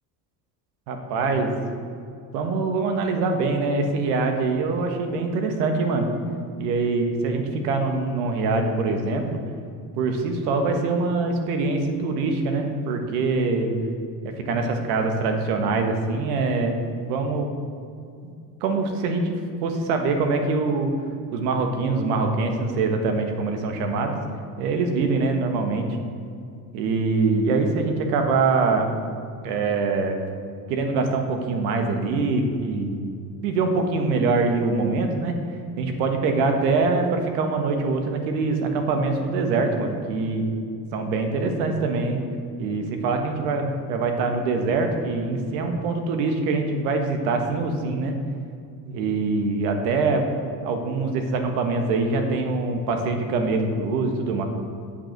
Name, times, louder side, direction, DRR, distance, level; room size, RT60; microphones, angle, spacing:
voice 1, 0.9-1.5 2.3-6.1 6.6-9.4 9.9-13.7 14.2-17.5 18.6-20.9 21.3-24.1 24.6-25.9 26.7-28.9 29.4-30.2 30.7-33.0 33.4-35.3 35.8-40.5 40.9-42.2 42.6-48.1 48.8-50.2 50.6-54.4, right 3 dB, 70° right, 4 dB, 1.5 m, -24 dB
8.6 x 5.4 x 6.6 m, 2.4 s
hypercardioid pair, 90°, 50 cm